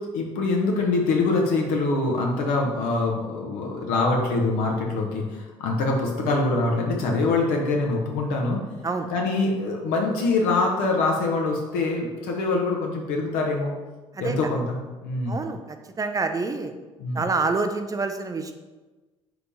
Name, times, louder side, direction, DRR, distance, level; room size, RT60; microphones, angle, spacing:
voice 1, 0.1-8.6 9.1-13.7 14.2-14.8 15.0-15.4 17.0-17.2, left 3 dB, 70° left, 0 dB, 0.6 m, -24 dB
voice 2, 15.3-16.7 17.1-18.5, right 3 dB, 25° right, 7 dB, 0.4 m, -27 dB
3.9 x 2.9 x 3.5 m, 1.2 s
hypercardioid pair, 50°, 15 cm